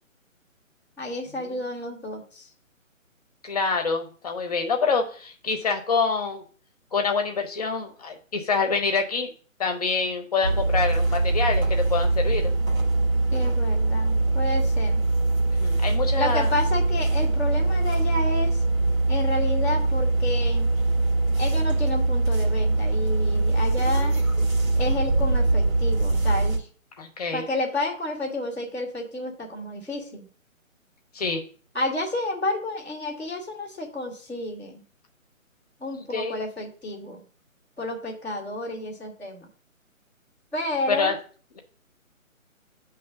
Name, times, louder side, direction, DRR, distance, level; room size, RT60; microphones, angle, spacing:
voice 1, 1.0-2.5 13.3-15.0 16.2-18.6 19.1-20.7 21.4-24.2 24.7-26.7 27.3-30.3 31.7-34.8 35.8-37.2 37.8-39.5 40.5-41.1, left 2 dB, 5° right, -13 dB, 0.7 m, -30 dB
voice 2, 3.4-6.4 6.9-9.3 9.6-12.5 15.6-16.5 27.0-27.4 31.1-31.4 36.0-36.4 40.9-41.1, left 4 dB, 30° left, 4 dB, 1.0 m, -26 dB
sound 1, 10.4-26.6, right 2 dB, 85° right, 1.9 m, -22 dB
9.2 x 3.2 x 6.0 m, 0.41 s
figure-of-eight pair, 155°, 41 cm